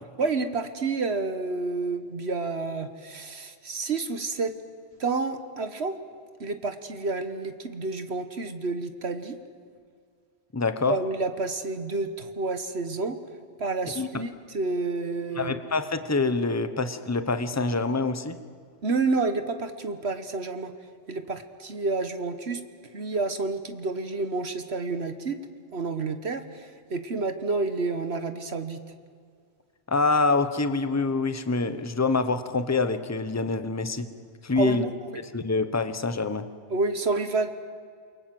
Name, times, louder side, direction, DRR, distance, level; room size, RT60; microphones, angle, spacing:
voice 1, 0.2-4.6 5.0-5.9 6.4-9.4 10.8-13.2 13.6-15.6 18.8-20.7 21.1-22.6 22.9-25.4 25.7-28.8 34.6-35.1 36.7-37.5, right 3 dB, 65° right, 9 dB, 1.5 m, -29 dB
voice 2, 10.5-10.9 14.0-14.1 15.4-18.4 29.9-34.1 34.4-34.9 35.3-36.5, left 3 dB, 15° left, 10 dB, 1.0 m, -26 dB
28.5 x 23.5 x 7.8 m, 2.1 s
omnidirectional pair, 1.2 m